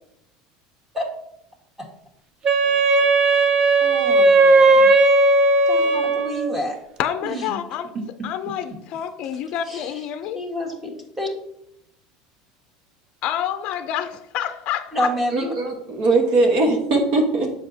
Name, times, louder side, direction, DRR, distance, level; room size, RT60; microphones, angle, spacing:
Wind instrument woodwind instrument, 2.5-6.6, right 2 dB, 35° right, 0.6 m, -16 dB
voice 1, 3.8-4.9 5.7-6.8 7.2-7.5 7.9-8.3 9.7-10.0 10.3-11.3 14.9-15.5, equal, 15° right, 0 dB, 1.7 m, -29 dB
voice 2, 7.0-7.9 8.2-10.4 13.2-15.1, left 10 dB, 55° left, 10 dB, 0.5 m, -28 dB
voice 3, 15.3-17.5, right 2 dB, 60° right, 0 dB, 1.2 m, -20 dB
7.5 x 5.1 x 2.8 m, 0.77 s
supercardioid pair, 110°, 2 cm